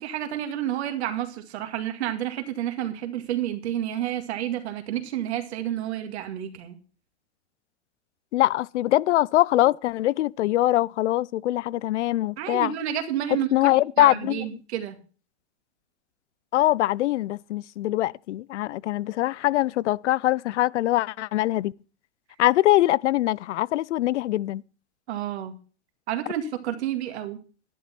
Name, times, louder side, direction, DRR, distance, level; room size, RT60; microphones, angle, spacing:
voice 1, 0.0-6.8 12.4-13.7 14.0-15.0 25.1-25.5 26.1-27.4, right 11 dB, 65° right, 2.1 m, -30 dB
voice 2, 8.3-12.7 13.5-14.4 16.5-21.7 22.4-24.6, left 15 dB, 80° left, 0.5 m, -23 dB
11.0 x 11.0 x 4.3 m
hypercardioid pair, 135°, 35 cm